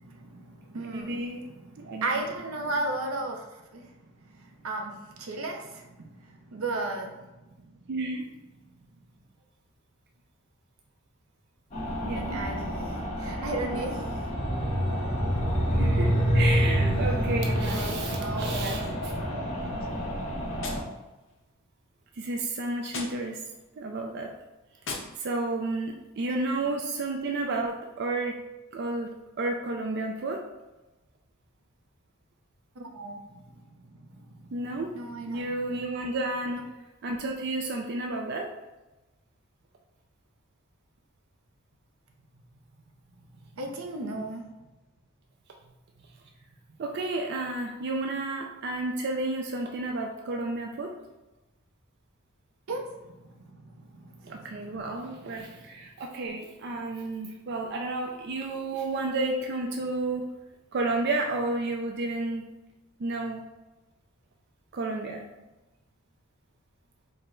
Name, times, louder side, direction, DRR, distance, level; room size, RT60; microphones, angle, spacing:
voice 1, 0.0-7.9 8.7-8.8 12.1-15.2 17.7-18.8 19.3-19.8 26.5-26.7 32.8-35.6 43.5-44.4 52.7-55.6, right 2 dB, 85° right, 2 dB, 0.6 m, -37 dB
voice 2, 0.7-1.4 1.8-2.2 7.9-8.3 12.0-12.4 15.7-19.1 22.2-23.4 23.8-24.3 25.2-28.3 28.7-29.1 29.4-30.4 34.5-34.9 35.3-36.6 37.0-38.5 46.8-50.9 54.2-60.2 60.7-62.4 63.0-63.4 64.7-65.2, right 2 dB, 50° right, 1 dB, 0.4 m, -31 dB
sound 1, 11.7-20.8, equal, 30° left, 0.9 m, -27 dB
Gunshot gunfire, 20.6-21.7 22.9-23.7 24.8-25.7, left 3 dB, 60° left, 0.6 m, -41 dB
4.5 x 2.1 x 3.8 m, 1.1 s
head